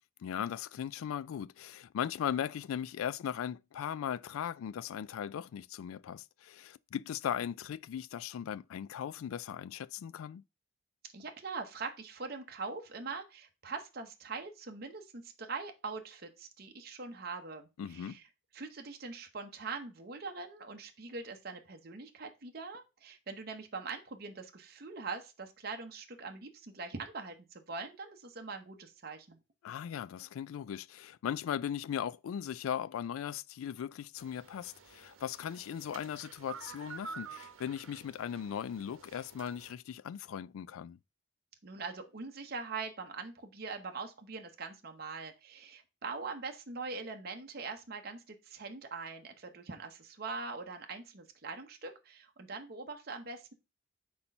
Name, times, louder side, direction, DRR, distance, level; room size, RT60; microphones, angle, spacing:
voice 1, 0.2-10.4 17.8-18.2 29.6-41.0, left 9 dB, 85° left, 0.3 m, -38 dB
voice 2, 11.1-18.2 18.5-29.4 41.6-53.5, right 4 dB, 50° right, 0.8 m, -42 dB
sound 1, 34.2-39.7, right 5 dB, 80° right, 0.9 m, -50 dB
4.3 x 4.3 x 5.3 m
head